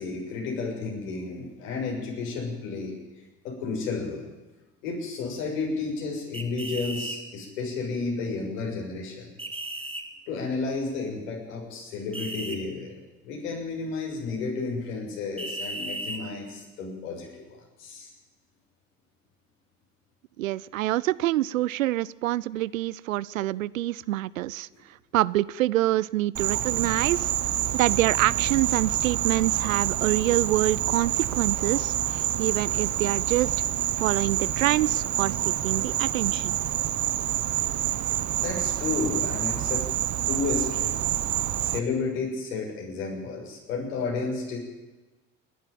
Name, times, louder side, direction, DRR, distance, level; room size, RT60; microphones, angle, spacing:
voice 1, 0.0-3.0 3.4-4.3 4.8-9.3 10.3-12.9 13.2-18.1 38.4-39.9 40.3-40.9 41.6-44.6, left 4 dB, 70° left, -1 dB, 6.8 m, -32 dB
sound 1, 6.3-7.2 9.4-10.0 12.1-12.6 15.4-16.2, right 1 dB, 15° right, 3.7 m, -35 dB
voice 2, 20.4-24.7 25.1-27.3 27.7-33.5 34.0-36.6, right 15 dB, 80° right, 22 dB, 0.6 m, -26 dB
Insect, 26.4-41.8, right 12 dB, 45° right, 1.2 m, -27 dB
28.5 x 11.5 x 9.0 m, 1.1 s
figure-of-eight pair, 55°, 40 cm